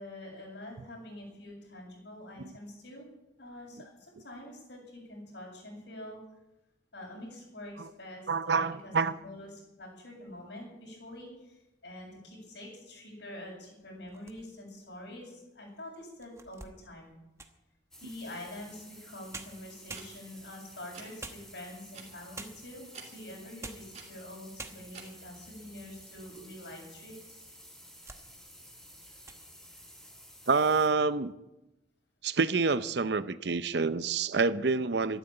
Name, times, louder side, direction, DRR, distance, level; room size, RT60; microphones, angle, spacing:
voice 1, 0.0-3.1 3.4-6.2 6.9-8.9 9.2-17.1 18.0-27.4, left 1 dB, 70° left, -2 dB, 7.6 m, -46 dB
voice 2, 8.3-9.1 30.5-31.3 32.2-35.2, right 4 dB, 65° right, 14 dB, 0.7 m, -27 dB
sound 1, 14.0-14.8 15.4-15.5 16.0-17.7 19.0-19.1 19.3-20.5 21.2-21.9 22.3-22.8 23.4-24.0 24.2-24.3 24.6-25.1 25.7-26.5 26.8-26.9 27.6-28.3 28.6-28.9 29.2-29.4, right 3 dB, 15° right, 1.0 m, -47 dB
sound 2, 17.9-30.9, equal, 5° left, 3.5 m, -53 dB
sound 3, 19.9-20.1 20.9-21.1 21.9-22.1 22.9-23.1 23.9-24.1 24.9-25.0, right 5 dB, 35° right, 2.8 m, -47 dB
13.5 x 12.0 x 8.9 m, 0.95 s
head